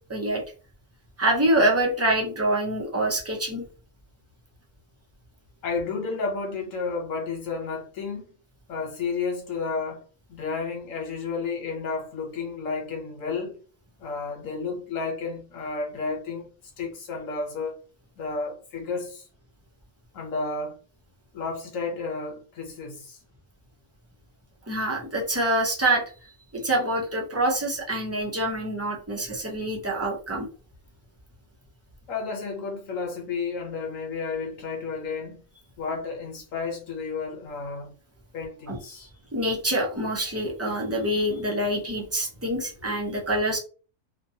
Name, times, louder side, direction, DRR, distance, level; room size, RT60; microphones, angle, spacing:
voice 1, 0.1-0.4 1.2-3.7 24.7-26.0 26.5-30.5 38.7-38.8 39.3-43.6, right 1 dB, 20° right, 0.4 m, -25 dB
voice 2, 5.6-8.3 8.7-10.0 10.3-13.5 14.0-16.5 16.8-17.8 18.2-19.2 20.1-20.8 21.3-23.2 32.1-35.4 35.8-37.9 38.3-39.1, left 4 dB, 85° left, 1.3 m, -32 dB
2.9 x 2.2 x 2.7 m
omnidirectional pair, 1.3 m